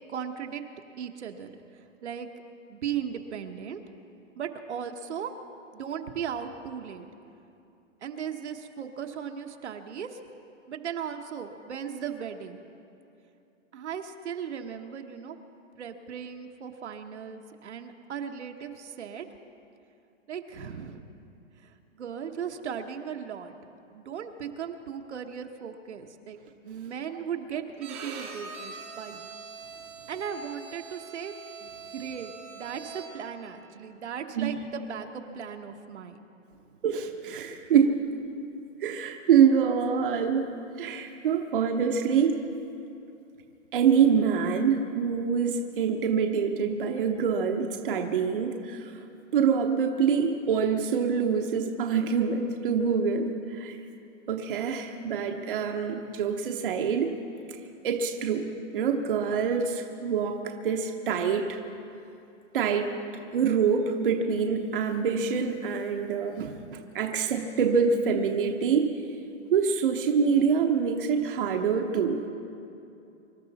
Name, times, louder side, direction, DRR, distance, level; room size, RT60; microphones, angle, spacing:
voice 1, 0.1-0.6 1.0-1.5 2.0-2.3 2.7-3.8 4.3-5.3 5.7-7.1 8.0-10.2 10.7-12.6 13.7-15.4 15.8-19.3 20.3-21.0 21.6-23.6 23.9-26.4 26.6-29.3 30.1-31.3 31.6-36.2, right 8 dB, 60° right, 5 dB, 1.2 m, -37 dB
Bowed string instrument, 27.8-33.4, right 5 dB, 10° right, 0.6 m, -43 dB
voice 2, 36.8-38.0 38.8-42.4 43.7-48.9 49.3-53.8 54.3-57.1 57.8-61.6 62.5-62.9 63.3-68.9 69.5-72.2, right 6 dB, 45° right, 3 dB, 1.0 m, -25 dB
25.0 x 12.5 x 4.1 m, 2.7 s
hypercardioid pair, 175°, 38 cm